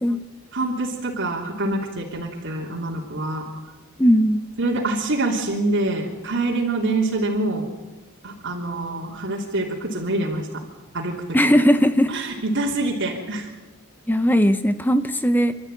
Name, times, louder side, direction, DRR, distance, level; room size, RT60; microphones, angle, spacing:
voice 1, 0.5-3.4 4.6-7.7 8.2-10.5 10.9-11.1 11.4-11.6 12.1-13.5, right 2 dB, 55° right, -2 dB, 3.3 m, -25 dB
voice 2, 4.0-4.5 11.3-12.1 14.1-15.6, equal, 10° left, 11 dB, 0.7 m, -18 dB
27.0 x 13.0 x 9.1 m, 1.2 s
head